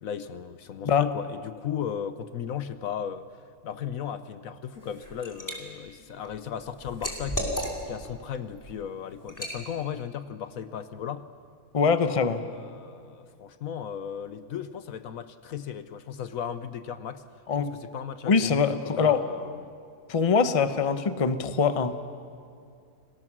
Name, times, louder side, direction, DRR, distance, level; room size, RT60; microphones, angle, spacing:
voice 1, 0.0-3.2 3.6-7.6 7.9-11.3 12.4-17.2 17.6-19.8, left 8 dB, 70° left, 12 dB, 1.2 m, -36 dB
Liquid, 4.8-5.6 6.0-8.1 8.5-8.7 9.3-9.6, equal, 10° left, 2.8 m, -34 dB
voice 2, 11.7-12.4 17.5-17.7 18.2-19.2 20.1-22.0, left 5 dB, 30° left, 10 dB, 0.8 m, -23 dB
30.0 x 19.5 x 6.2 m, 2.4 s
omnidirectional pair, 1.6 m